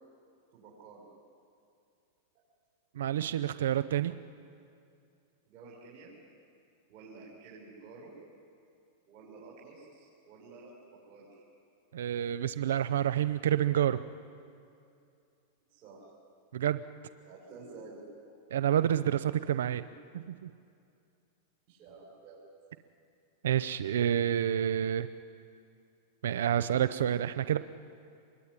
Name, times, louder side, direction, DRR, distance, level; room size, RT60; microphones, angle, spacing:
voice 1, 0.5-1.1 5.5-6.1 6.9-8.1 9.1-10.7 11.1-11.4 15.7-16.1 17.2-18.0 21.7-22.4, right 4 dB, 45° right, -4 dB, 6.2 m, -51 dB
voice 2, 2.9-4.1 11.9-14.0 16.5-16.8 18.5-19.8 20.1-20.5 23.4-25.1 26.2-27.6, right 10 dB, 90° right, 13 dB, 0.7 m, -28 dB
26.0 x 22.5 x 9.9 m, 2.5 s
supercardioid pair, 150°, 0 cm